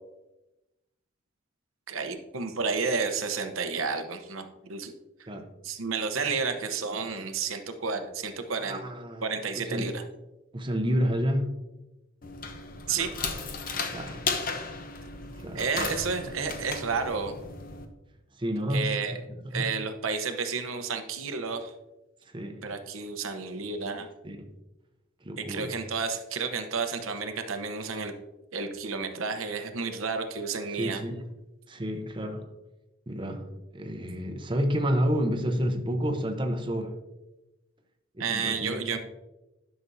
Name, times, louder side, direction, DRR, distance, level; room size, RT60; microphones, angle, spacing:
voice 1, 1.9-4.9 5.6-8.8 9.2-10.0 12.9-13.1 15.5-17.3 18.7-19.1 19.5-21.7 22.6-24.1 25.4-28.1 28.5-31.0 38.2-39.0, right 5 dB, 85° right, 0.9 m, -31 dB
voice 2, 8.6-9.3 9.5-9.9 10.5-11.6 13.8-14.3 15.4-15.9 18.4-19.8 22.3-22.7 24.2-24.5 25.2-25.8 30.8-31.2 31.7-32.5 33.1-37.0 38.2-39.0, equal, 25° right, 0.8 m, -30 dB
sound 1, 12.2-17.9, left 4 dB, 45° left, 0.8 m, -35 dB
11.5 x 6.1 x 2.7 m
head